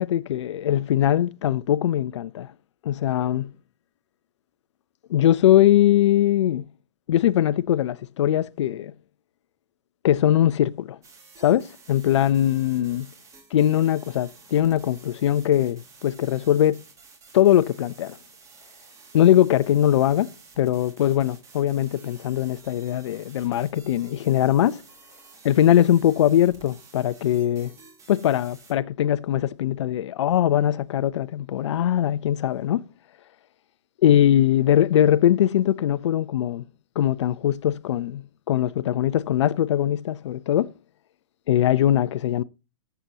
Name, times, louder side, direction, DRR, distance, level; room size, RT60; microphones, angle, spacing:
voice 1, 0.0-2.5 2.8-3.5 5.1-6.6 7.1-8.9 10.0-11.0 11.4-13.1 13.5-16.8 17.3-18.2 19.1-20.3 20.6-24.8 25.4-27.7 28.1-32.8 34.0-36.7 37.0-40.7 41.5-42.4, left 11 dB, 65° left, 0.6 m, -21 dB
sound 1, 11.0-28.7, right 4 dB, 20° right, 2.3 m, -51 dB
14.0 x 6.9 x 2.9 m
hypercardioid pair, 125°, 16 cm